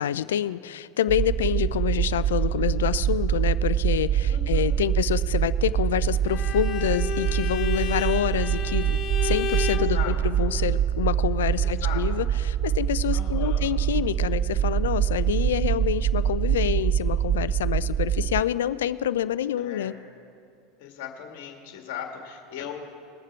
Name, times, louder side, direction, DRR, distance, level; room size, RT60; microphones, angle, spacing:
voice 1, 0.0-19.9, left 11 dB, 75° left, 16 dB, 0.4 m, -27 dB
sound 1, 1.1-18.4, right 10 dB, 45° right, 0.4 m, -25 dB
voice 2, 4.3-4.8 9.7-10.1 11.6-12.0 13.1-13.6 19.6-19.9 20.8-22.7, left 9 dB, 60° left, 2 dB, 1.9 m, -38 dB
Bowed string instrument, 6.2-9.9, left 7 dB, 45° left, 0.9 m, -32 dB
21.5 x 7.3 x 4.6 m, 2.5 s
hypercardioid pair, 85°, 0 cm